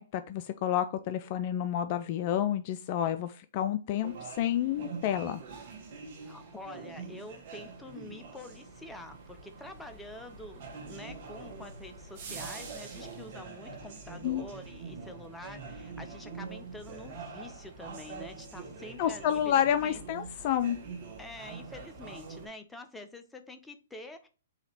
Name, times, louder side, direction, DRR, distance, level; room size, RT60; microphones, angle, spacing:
voice 1, 0.0-5.4 14.2-14.4 19.0-20.8, left 10 dB, 45° left, 11 dB, 0.3 m, -29 dB
sound 1, 4.0-22.5, right 4 dB, 50° right, 1.2 m, -44 dB
voice 2, 6.2-20.0 20.3-20.4 21.2-24.3, left 2 dB, 10° left, 7 dB, 0.6 m, -47 dB
4.0 x 2.8 x 4.5 m, 0.36 s
hypercardioid pair, 120°, 0 cm